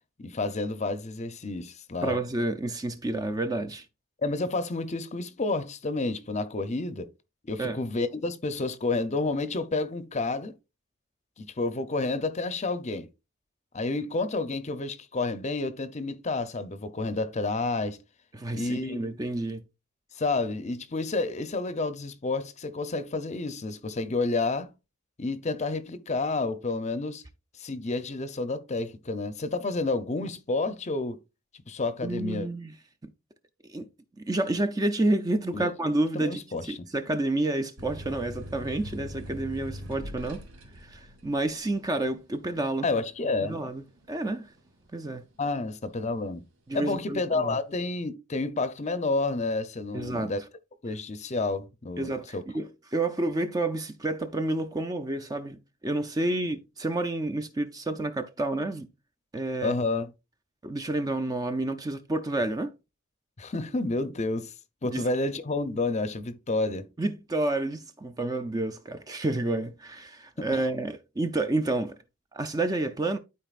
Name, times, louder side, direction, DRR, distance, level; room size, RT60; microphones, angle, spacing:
voice 1, 0.2-2.2 4.2-7.1 7.4-10.5 11.4-13.1 13.7-18.0 18.5-19.1 20.1-24.7 25.2-27.2 27.6-31.2 31.7-32.5 35.5-35.7 36.1-36.9 42.8-43.6 45.4-46.4 46.7-50.4 50.8-52.4 59.6-60.1 63.4-64.5 64.8-66.9 70.4-70.6, left 3 dB, 30° left, 0.6 m, -30 dB
voice 2, 2.0-3.9 7.6-7.8 18.3-19.6 32.0-32.8 33.7-33.9 34.2-40.5 40.7-42.9 43.4-44.5 44.9-45.3 46.7-47.6 49.9-50.3 52.0-58.9 59.3-59.8 60.6-62.7 64.8-65.0 67.0-72.0 72.3-73.2, right 2 dB, 15° right, 0.4 m, -29 dB
sound 1, 37.8-45.1 45.5-46.2, equal, 75° right, 2.1 m, -42 dB
12.5 x 4.4 x 2.4 m
head